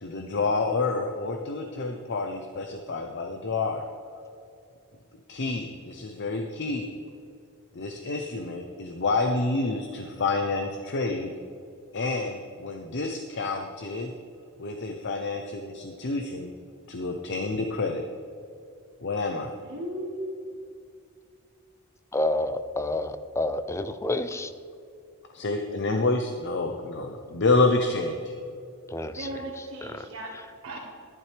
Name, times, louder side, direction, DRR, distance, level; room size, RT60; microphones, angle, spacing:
voice 1, 0.0-3.9 5.3-6.9 7.7-11.3 11.9-14.1 14.6-16.5 16.9-18.1 19.0-19.5 25.3-28.3, left 3 dB, 55° left, 4 dB, 0.7 m, -28 dB
voice 2, 19.6-20.3 29.1-30.3 30.6-30.8, right 1 dB, 65° right, -6 dB, 1.8 m, -36 dB
voice 3, 22.1-24.5 28.9-29.3 29.8-30.1, left 1 dB, 15° left, 11 dB, 0.4 m, -29 dB
12.0 x 11.0 x 3.4 m, 2.5 s
head